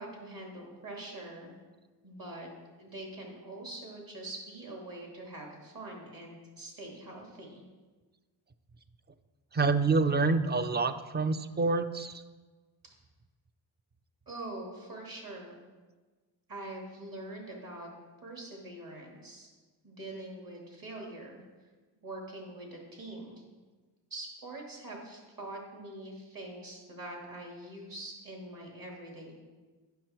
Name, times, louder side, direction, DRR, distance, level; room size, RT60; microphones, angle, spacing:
voice 1, 0.0-1.5 2.0-2.5 2.8-7.6 14.3-15.6 16.5-17.9 18.2-19.5 19.8-21.4 22.0-23.5 24.1-29.3, right 2 dB, 45° right, -1 dB, 2.6 m, -44 dB
voice 2, 9.5-12.2, right 3 dB, 25° right, 11 dB, 0.4 m, -27 dB
9.2 x 6.3 x 4.4 m, 1.3 s
cardioid pair, 90°, 46 cm